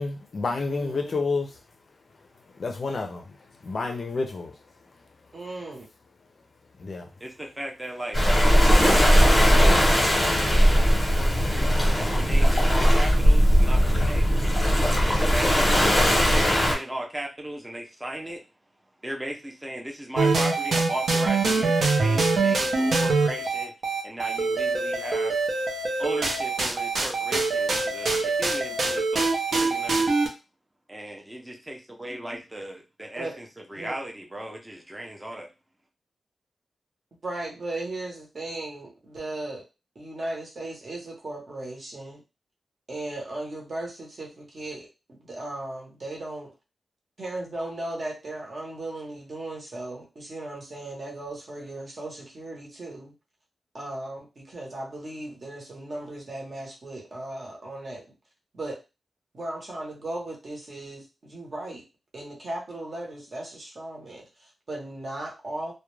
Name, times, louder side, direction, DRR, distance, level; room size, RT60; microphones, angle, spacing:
voice 1, 0.0-1.5 2.6-3.2 3.7-4.5 6.8-7.0, left 3 dB, 45° left, 4 dB, 0.4 m, -29 dB
voice 2, 0.7-1.2 5.3-5.8 33.2-33.3 33.7-34.0 37.2-39.6 39.9-42.2 42.9-46.5 47.2-53.1 53.7-58.0 58.5-58.8 59.3-61.8 62.1-65.7, right 2 dB, 40° right, -1 dB, 0.9 m, -36 dB
voice 3, 7.2-10.0 10.7-14.3 14.9-18.4 19.0-23.7 24.0-25.4 26.0-30.1 30.9-35.5, right 1 dB, 10° right, 1 dB, 0.5 m, -37 dB
Waves surf, 8.1-16.7, equal, 15° left, 0.9 m, -19 dB
sound 1, 20.2-30.3, right 3 dB, 65° right, 0.6 m, -24 dB
2.3 x 2.1 x 3.0 m, 0.28 s
wide cardioid pair, 170°, 0 cm